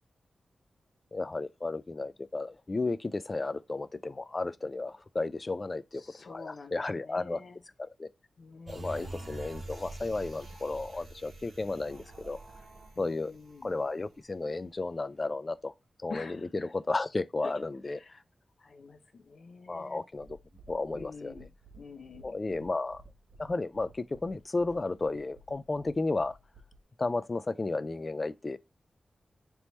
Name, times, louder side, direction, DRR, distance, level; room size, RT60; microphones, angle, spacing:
voice 1, 1.1-6.0 6.3-7.4 7.8-8.1 8.7-12.4 13.0-13.3 13.6-15.7 16.0-18.2 19.7-20.4 20.7-21.3 22.2-23.0 23.4-26.4 27.0-28.6, left 3 dB, 30° left, 0.3 m, -33 dB
voice 2, 5.9-7.6 8.4-9.3 12.9-13.7 16.1-16.5 17.4-17.5 17.9-18.1 18.6-20.0 20.9-21.5 21.8-22.4, left 4 dB, 65° left, 0.7 m, -47 dB
sound 1, 8.7-14.3 14.7-14.8, right 2 dB, 60° right, 0.9 m, -46 dB
sound 2, 20.1-26.8, right 2 dB, 90° right, 1.3 m, -56 dB
3.3 x 3.0 x 4.1 m
wide cardioid pair, 115°, 0 cm